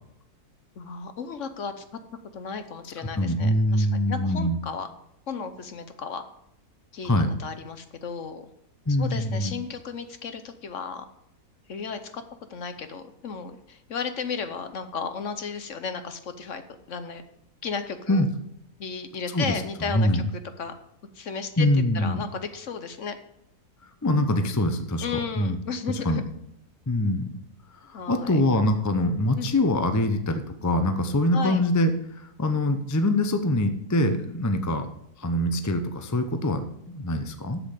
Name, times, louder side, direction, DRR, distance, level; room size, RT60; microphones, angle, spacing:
voice 1, 0.8-1.8 2.3-4.9 5.3-6.2 6.9-7.1 7.4-8.4 9.0-11.0 11.7-12.2 12.5-16.6 16.9-17.2 17.6-18.2 18.8-20.2 20.6-20.7 21.1-21.7 21.9-23.2 25.0-26.2 27.9-28.4 29.4-29.5 31.3-31.6, left 5 dB, 55° left, 9 dB, 1.1 m, -34 dB
voice 2, 3.2-4.6 7.0-7.3 8.9-9.5 18.1-18.3 19.3-19.6 19.9-20.3 21.6-22.2 23.8-25.1 25.4-25.6 26.0-26.2 26.9-27.3 27.8-34.9 35.2-37.6, left 1 dB, 20° left, 7 dB, 0.5 m, -24 dB
7.7 x 7.2 x 8.1 m, 0.75 s
omnidirectional pair, 1.7 m